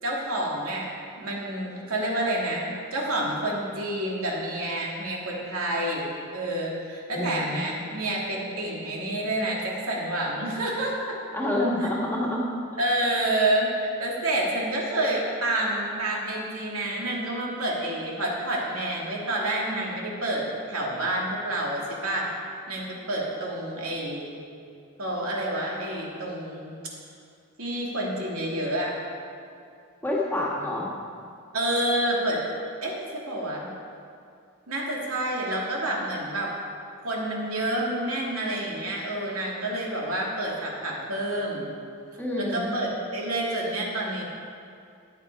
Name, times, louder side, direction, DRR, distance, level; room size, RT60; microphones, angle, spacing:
voice 1, 0.0-0.9 1.2-11.1 11.8-11.9 12.8-22.3 22.7-24.4 25.0-26.7 27.6-28.9 31.5-32.4 32.8-33.7 34.7-36.5 37.0-41.7 42.4-44.2, right 1 dB, 70° right, -3 dB, 2.6 m, -28 dB
voice 2, 7.1-7.6 11.3-12.5 30.0-30.9 42.2-42.7, left 1 dB, 10° left, -5 dB, 1.8 m, -27 dB
15.5 x 9.5 x 4.8 m, 2.4 s
head